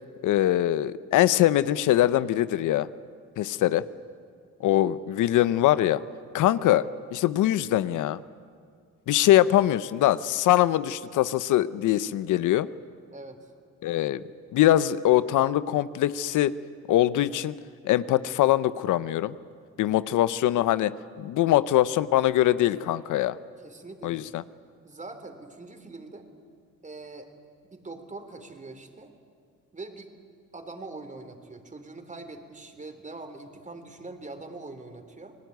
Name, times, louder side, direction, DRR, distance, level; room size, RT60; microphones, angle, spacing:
voice 1, 0.2-2.9 3.4-3.8 4.6-6.0 6.3-8.2 9.1-12.7 13.8-14.2 14.5-16.6 16.9-17.6 17.8-19.4 19.8-20.9 21.2-23.4 24.0-24.4, left 13 dB, 80° left, 15 dB, 0.8 m, -22 dB
voice 2, 13.1-13.5 21.4-21.9 23.6-24.3 24.8-26.3 26.8-27.3 27.6-29.1 29.7-30.1 30.5-35.4, right 3 dB, 25° right, 7 dB, 3.5 m, -43 dB
29.5 x 20.0 x 9.4 m, 2.1 s
cardioid pair, 90°, 30 cm